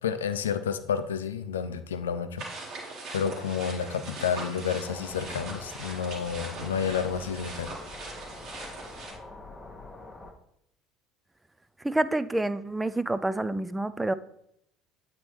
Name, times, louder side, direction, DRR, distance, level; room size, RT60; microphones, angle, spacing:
voice 1, 0.0-2.4 3.1-7.7, left 7 dB, 80° left, 10 dB, 0.4 m, -30 dB
sound 1, 2.4-9.1, right 3 dB, 60° right, 2.0 m, -41 dB
sound 2, 4.8-10.3, left 2 dB, 15° left, 1.0 m, -45 dB
voice 2, 11.8-14.1, right 2 dB, 10° right, 15 dB, 0.4 m, -28 dB
8.4 x 4.1 x 3.2 m, 0.75 s
figure-of-eight pair, 65°, 0 cm